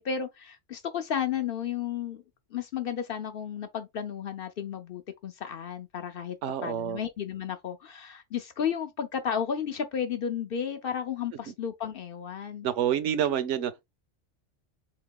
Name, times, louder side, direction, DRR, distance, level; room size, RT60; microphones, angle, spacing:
voice 1, 0.0-2.2 2.5-6.4 6.6-12.7, left 8 dB, 60° left, 0.7 m, -33 dB
voice 2, 6.4-7.0 12.6-13.9, right 9 dB, 80° right, 0.9 m, -28 dB
3.8 x 2.9 x 3.5 m
omnidirectional pair, 1.3 m